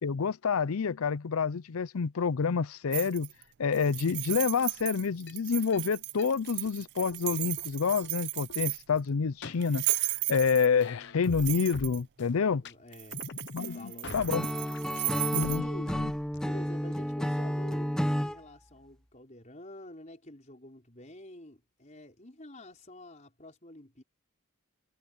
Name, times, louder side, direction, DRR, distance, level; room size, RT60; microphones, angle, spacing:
voice 1, 0.0-3.3 3.6-12.6 13.5-13.8 14.1-14.5 15.3-15.6, left 5 dB, 80° left, 0.5 m, -28 dB
sound 1, 2.9-3.4 3.7-9.0 9.6-10.8 11.2-12.0 12.9-15.6, right 21 dB, 50° right, 0.3 m, -35 dB
sound 2, 4.3-4.4 4.8-4.9 5.3-5.4 5.7-5.8 6.2-6.3 6.6-6.7 7.1-7.2 7.6-7.7 8.0-8.1 8.5-8.6 9.0-9.1 9.4-10.0 10.3-10.4 10.8-12.3 12.6-12.7 13.1-15.0 15.4-16.7, left 3 dB, 55° left, 0.9 m, -44 dB
voice 2, 12.6-14.7 15.0-16.0 16.4-24.0, left 1 dB, 35° left, 5.0 m, -48 dB
Acoustic guitar / Strum, 14.3-18.4, equal, 5° left, 0.7 m, -31 dB
head